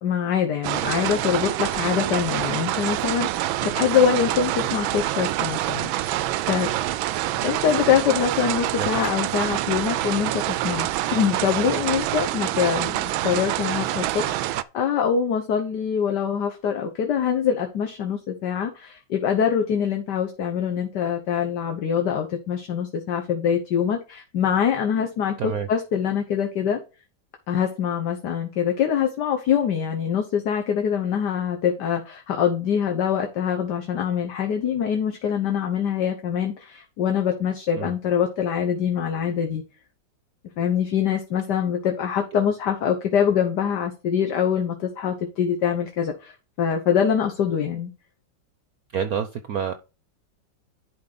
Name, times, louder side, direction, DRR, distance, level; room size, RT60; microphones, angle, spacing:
voice 1, 0.0-6.7 7.4-26.8 27.5-39.6 40.6-47.9, left 8 dB, 60° left, 4 dB, 1.7 m, -24 dB
sound 1, 0.6-14.6, right 14 dB, 85° right, 1.4 m, -26 dB
voice 2, 25.4-25.7 37.8-37.9 48.9-49.7, right 7 dB, 60° right, 10 dB, 1.0 m, -28 dB
11.0 x 4.7 x 4.0 m, 0.31 s
omnidirectional pair, 2.1 m